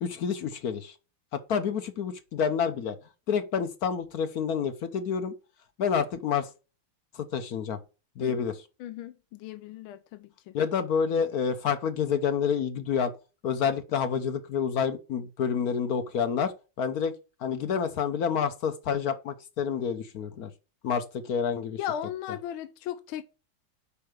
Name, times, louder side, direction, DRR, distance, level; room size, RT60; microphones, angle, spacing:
voice 1, 0.0-0.9 1.3-3.0 3.3-5.3 5.8-6.5 7.1-7.8 8.2-8.5 10.5-13.1 13.4-17.2 17.4-20.5 20.8-21.8, left 7 dB, 60° left, 1.1 m, -28 dB
voice 2, 8.8-10.5 21.8-23.2, left 10 dB, 85° left, 1.5 m, -36 dB
5.7 x 5.2 x 6.3 m
omnidirectional pair, 2.2 m